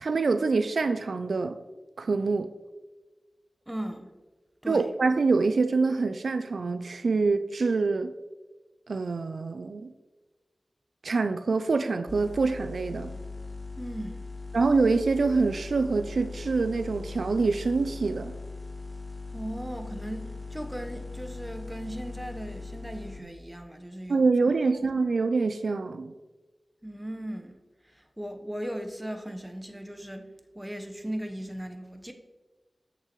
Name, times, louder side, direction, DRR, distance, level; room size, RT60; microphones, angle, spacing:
voice 1, 0.0-1.6 2.0-2.5 4.7-8.1 8.9-9.9 11.0-13.1 14.5-18.3 24.1-26.1, right 4 dB, 85° right, 0.3 m, -25 dB
voice 2, 3.7-4.1 4.6-4.9 13.8-14.3 19.3-24.3 24.8-24.9 26.8-27.6 27.8-30.3 30.5-32.1, equal, 10° right, 1.0 m, -37 dB
sound 1, 12.1-23.2, left 3 dB, 30° left, 1.4 m, -40 dB
8.4 x 6.8 x 3.1 m
cardioid pair, 40°, 0 cm